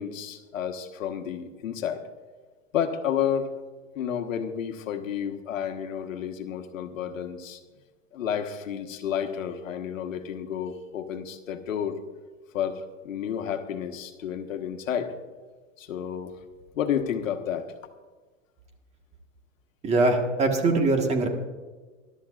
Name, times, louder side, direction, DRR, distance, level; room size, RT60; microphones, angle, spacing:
voice 1, 0.0-2.0 2.7-3.5 3.9-7.6 8.1-12.0 12.5-15.1 15.8-16.3 16.7-17.7, left 8 dB, 80° left, 6 dB, 1.4 m, -31 dB
voice 2, 19.8-21.3, right 2 dB, 15° right, 3 dB, 1.5 m, -22 dB
22.0 x 12.0 x 2.5 m, 1.3 s
hypercardioid pair, 135°, 39 cm